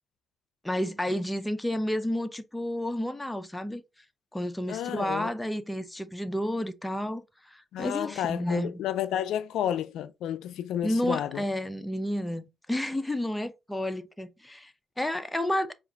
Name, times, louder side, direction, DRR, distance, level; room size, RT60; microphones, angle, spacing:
voice 1, 0.6-3.8 4.3-8.8 10.8-15.7, left 1 dB, 10° left, 0.5 m, -31 dB
voice 2, 4.7-5.3 7.7-11.4, left 10 dB, 80° left, 0.3 m, -31 dB
4.8 x 2.4 x 3.3 m
cardioid pair, 90°, 0 cm